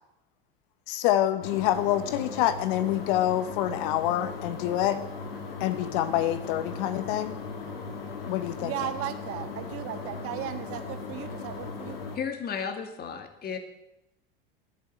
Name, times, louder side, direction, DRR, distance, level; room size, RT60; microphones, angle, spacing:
voice 1, 0.9-5.0 5.6-7.4 8.3-8.7, left 12 dB, 60° left, 12 dB, 1.1 m, -26 dB
sound 1, 1.4-12.2, left 4 dB, 85° left, 2.8 m, -38 dB
voice 2, 8.6-12.0, right 11 dB, 50° right, 9 dB, 1.6 m, -36 dB
voice 3, 12.1-13.6, left 6 dB, 35° left, 6 dB, 2.3 m, -33 dB
11.0 x 8.5 x 9.0 m, 0.88 s
hypercardioid pair, 85°, 29 cm